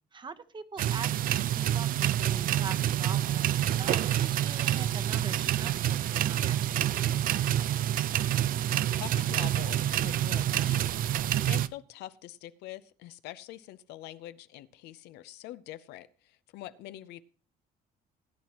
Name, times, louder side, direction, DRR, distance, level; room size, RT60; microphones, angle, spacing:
voice 1, 0.1-7.3, right 4 dB, 25° right, 10 dB, 0.9 m, -43 dB
sound 1, 0.8-11.7, right 12 dB, 55° right, 0.5 m, -27 dB
voice 2, 9.0-17.2, left 14 dB, 85° left, 14 dB, 0.7 m, -45 dB
18.0 x 9.5 x 2.9 m, 0.39 s
cardioid pair, 110°, 17 cm